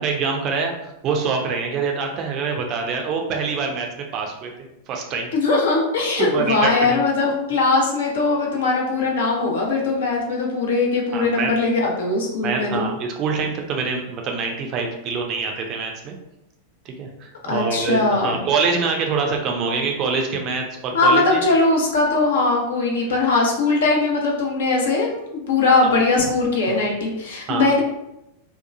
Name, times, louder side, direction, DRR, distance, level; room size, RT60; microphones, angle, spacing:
voice 1, 0.0-3.9 4.1-4.5 4.9-5.3 6.2-7.0 11.1-11.5 12.4-16.2 16.8-21.4 25.8-26.0 26.7-26.8 27.5-27.7, right 5 dB, 35° right, 2 dB, 0.5 m, -25 dB
voice 2, 5.3-12.9 17.5-18.4 20.9-27.8, left 3 dB, 60° left, -1 dB, 0.7 m, -20 dB
2.8 x 2.2 x 2.5 m, 0.86 s
figure-of-eight pair, 90°, 0 cm